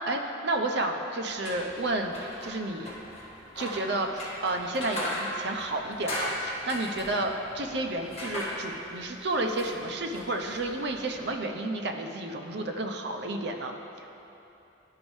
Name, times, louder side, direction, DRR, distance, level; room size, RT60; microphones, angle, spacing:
voice 1, 0.0-2.9 3.6-14.1, right 2 dB, 60° right, 3 dB, 0.6 m, -31 dB
sound 1, 1.3-11.3, equal, 35° left, 1.8 m, -38 dB
12.0 x 5.2 x 3.1 m, 3.0 s
head